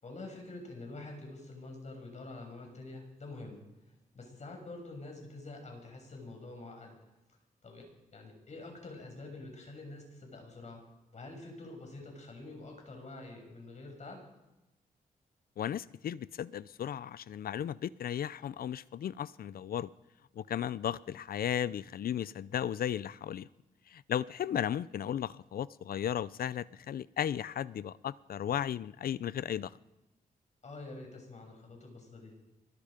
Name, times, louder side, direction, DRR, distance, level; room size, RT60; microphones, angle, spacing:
voice 1, 0.0-3.6 4.1-7.0 7.6-10.8 11.1-14.2 30.6-32.4, left 2 dB, 50° left, 6.9 m, -47 dB
voice 2, 15.6-19.9 20.4-23.5 23.9-29.7, left 10 dB, 70° left, 0.6 m, -35 dB
24.0 x 21.0 x 5.2 m
cardioid pair, 85°, 16 cm